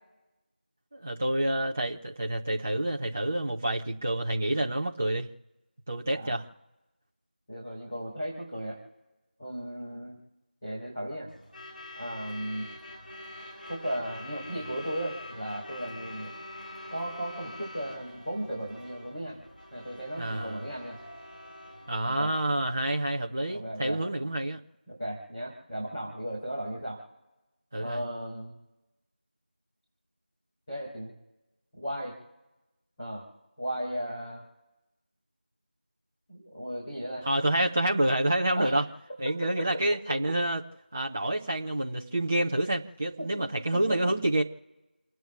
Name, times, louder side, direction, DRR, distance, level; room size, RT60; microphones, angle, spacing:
voice 1, 0.9-5.3 5.9-6.5 20.2-20.6 21.9-24.6 27.7-28.0 37.2-38.8 39.2-40.6 40.9-44.4, right 1 dB, 15° right, -2 dB, 0.7 m, -28 dB
voice 2, 7.5-8.8 9.4-10.2 10.6-11.3 12.0-12.7 13.7-16.3 16.9-19.4 19.7-21.0 22.2-22.3 23.5-24.0 24.9-27.0 27.8-28.5 30.7-31.1 31.8-32.1 33.0-33.2 33.6-34.4 36.3-37.3 37.5-37.6 38.6-38.8 43.9-44.0, equal, 15° left, -8 dB, 4.1 m, -35 dB
Truck / Alarm, 11.3-23.2, left 1 dB, 60° left, 3.6 m, -45 dB
30.0 x 10.0 x 3.6 m, 1.1 s
figure-of-eight pair, 175°, 5 cm